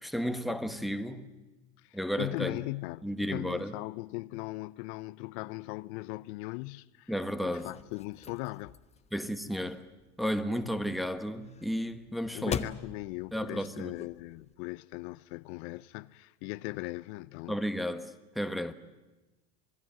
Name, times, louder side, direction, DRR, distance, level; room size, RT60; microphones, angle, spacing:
voice 1, 0.0-1.3 1.9-2.6 3.0-3.8 7.1-7.7 9.1-9.9 10.2-12.6 13.3-14.0 17.5-18.7, equal, ahead, 1.4 m, -33 dB
voice 2, 1.8-7.1 7.4-8.8 12.3-17.5, left 21 dB, 65° left, 0.7 m, -39 dB
sound 1, 7.5-14.5, left 6 dB, 20° left, 1.1 m, -44 dB
27.0 x 19.5 x 9.0 m
supercardioid pair, 120°, 35 cm